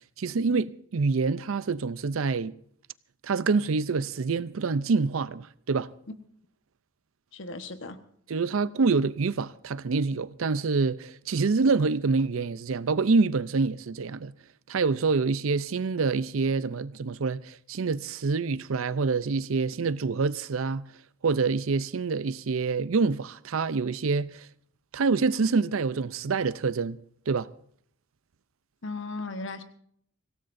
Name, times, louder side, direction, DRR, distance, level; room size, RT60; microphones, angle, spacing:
voice 1, 0.2-2.5 3.2-5.9 8.3-14.3 14.7-20.8 21.2-24.5 24.9-27.0 27.3-27.5, right 4 dB, 90° right, 0.6 m, -26 dB
voice 2, 7.3-8.0 28.8-29.6, left 3 dB, 65° left, 1.3 m, -36 dB
25.0 x 17.0 x 2.6 m
head